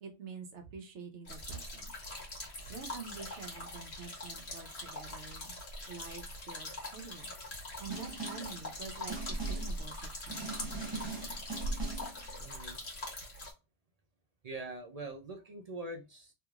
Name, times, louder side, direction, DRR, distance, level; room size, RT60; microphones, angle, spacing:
voice 1, 0.0-1.9 2.6-5.6 5.9-7.3 7.8-9.9 10.3-10.4, right 5 dB, 85° right, 4 dB, 1.1 m, -47 dB
sound 1, 1.2-13.5, left 1 dB, 65° left, 1.6 m, -42 dB
Snare drum, 7.9-8.6 9.1-9.8 10.3-12.2, right 4 dB, 25° right, 1.0 m, -41 dB
voice 2, 12.4-12.8 14.4-16.3, right 2 dB, 50° right, 4 dB, 0.5 m, -43 dB
3.2 x 3.0 x 2.3 m, 0.29 s
omnidirectional pair, 1.1 m